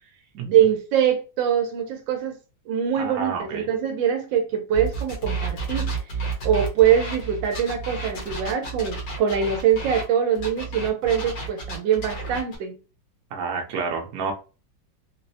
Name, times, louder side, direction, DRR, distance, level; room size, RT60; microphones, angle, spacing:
voice 1, 0.5-2.4 2.7-5.9 6.4-12.7, right 8 dB, 85° right, 1.3 m, -23 dB
voice 2, 3.0-3.7 13.3-14.3, right 5 dB, 60° right, 1.1 m, -29 dB
sound 1, 4.7-10.0 10.4-12.6, right 3 dB, 65° left, 1.5 m, -31 dB
3.9 x 2.1 x 2.6 m
omnidirectional pair, 2.0 m